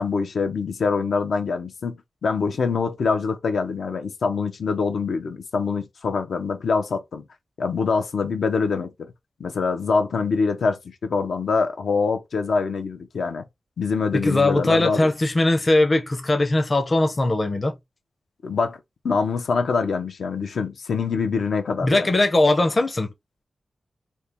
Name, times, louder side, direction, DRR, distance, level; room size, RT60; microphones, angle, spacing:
voice 1, 0.0-7.2 7.6-9.1 9.4-13.4 13.8-15.1 18.4-18.8 19.0-22.1, left 4 dB, 80° left, 0.7 m, -24 dB
voice 2, 14.1-17.8 21.8-23.1, left 2 dB, 25° left, 0.6 m, -20 dB
4.3 x 2.3 x 3.4 m
wide cardioid pair, 175°, 0 cm